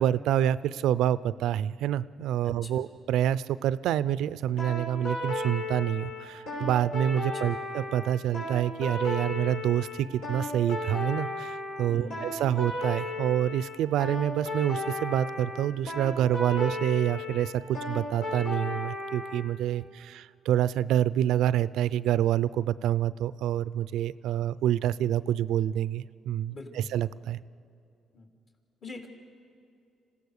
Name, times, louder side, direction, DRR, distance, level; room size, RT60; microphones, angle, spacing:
voice 1, 0.0-27.4, right 11 dB, 85° right, 17 dB, 0.4 m, -27 dB
voice 2, 2.4-2.8 7.4-7.5 11.9-12.2 26.5-26.9 28.1-28.3 28.8-29.1, left 2 dB, 50° left, 3 dB, 3.2 m, -42 dB
sound 1, 4.6-19.4, left 2 dB, 90° left, 5.9 m, -34 dB
27.0 x 16.5 x 6.6 m, 2.6 s
cardioid pair, 90°, 0 cm